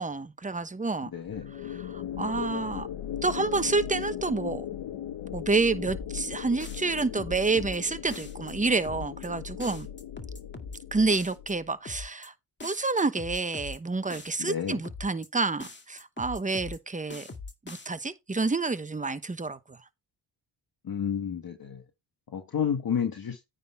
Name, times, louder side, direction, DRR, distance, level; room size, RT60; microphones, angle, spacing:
voice 1, 0.0-1.1 1.6-2.9 3.2-4.7 5.3-9.9 10.9-12.3 12.6-17.3 17.7-19.6, right 3 dB, 15° right, 0.9 m, -28 dB
voice 2, 1.1-1.5 14.4-14.8 20.8-21.8 22.3-23.4, left 8 dB, 50° left, 1.5 m, -30 dB
sound 1, 1.2-11.7, left 10 dB, 75° left, 1.1 m, -38 dB
sound 2, 5.9-6.3 6.6-7.8 8.1-8.5 8.9-9.3 9.6-10.8 11.1-11.5 11.9-12.3 12.6-13.8 14.1-14.5 14.9-15.3 15.6-16.8 17.1-17.9, left 3 dB, 25° left, 2.0 m, -42 dB
9.3 x 4.0 x 5.6 m
cardioid pair, 80°, 46 cm